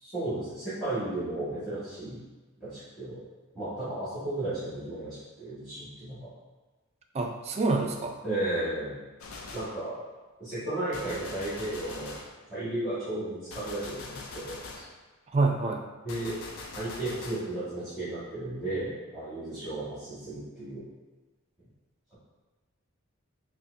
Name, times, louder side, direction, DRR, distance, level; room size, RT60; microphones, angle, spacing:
voice 1, 0.0-2.2 2.6-3.2 3.5-6.3 8.2-9.0 9.5-9.9 10.4-12.1 12.5-14.8 16.0-16.4 16.7-20.8, right 1 dB, ahead, -15 dB, 1.4 m, -34 dB
voice 2, 7.1-8.2 15.3-15.8, right 3 dB, 30° right, 3 dB, 0.3 m, -26 dB
Gunshot gunfire, 9.2-9.8 10.9-12.4 13.5-14.9 16.1-17.5, left 3 dB, 70° left, 0.4 m, -42 dB
5.5 x 2.1 x 2.5 m, 1.3 s
head